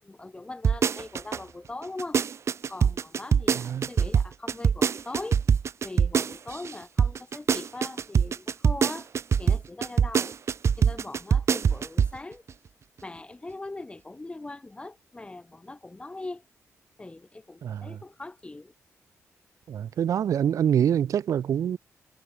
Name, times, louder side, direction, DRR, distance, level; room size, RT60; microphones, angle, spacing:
voice 1, 0.0-2.2 2.7-5.4 5.8-9.1 9.4-10.4 10.8-12.4 13.0-16.4 17.0-18.7, left 2 dB, 20° left, 7.2 m, -40 dB
sound 1, 0.6-1.4 1.8-6.7 7.0-12.2 12.5-12.6, right 7 dB, 55° right, 1.7 m, -23 dB
voice 2, 19.7-21.8, right 9 dB, 80° right, 3.0 m, -25 dB
cardioid pair, 105°, 6 cm